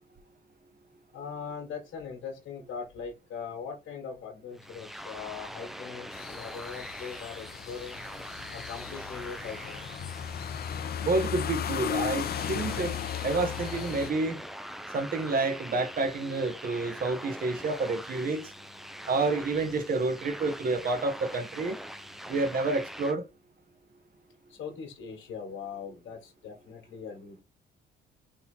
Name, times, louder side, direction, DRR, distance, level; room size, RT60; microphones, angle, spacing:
voice 1, 1.1-8.0 8.5-9.8 24.5-27.4, left 6 dB, 75° left, 1.4 m, -41 dB
sound 1, 4.5-23.1, equal, ahead, 0.4 m, -43 dB
sound 2, 6.1-14.1, left 9 dB, 50° left, 0.6 m, -36 dB
voice 2, 11.0-12.9 13.2-14.4 14.9-18.5 19.1-21.8 22.3-23.2, right 3 dB, 45° right, 1.0 m, -29 dB
3.8 x 2.9 x 4.2 m
cardioid pair, 90°, 20 cm